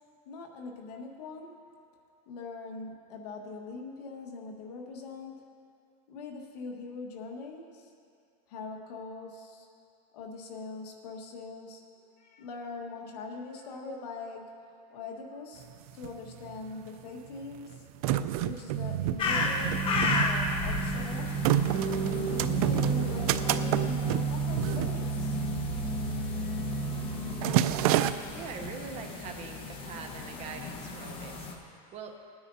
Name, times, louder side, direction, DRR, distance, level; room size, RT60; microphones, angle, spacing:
voice 1, 0.2-1.5 2.3-5.4 6.1-7.9 8.5-9.7 10.1-14.5 14.9-15.7 15.9-17.9 18.4-21.3 22.3-25.4, left 3 dB, 75° left, 2 dB, 1.6 m, -42 dB
sound 1, 15.6-15.7 15.9-16.7 17.4-25.6 25.9-26.2 26.5-26.9 27.1-28.1, right 12 dB, 65° right, 0.5 m, -29 dB
sound 2, 19.2-31.5, left 3 dB, 25° left, 1.1 m, -35 dB
sound 3, 19.2-27.5, right 3 dB, 5° right, 1.2 m, -32 dB
voice 2, 28.2-32.2, right 5 dB, 30° right, 4 dB, 0.9 m, -43 dB
20.0 x 9.6 x 2.7 m, 2.4 s
supercardioid pair, 145°, 20 cm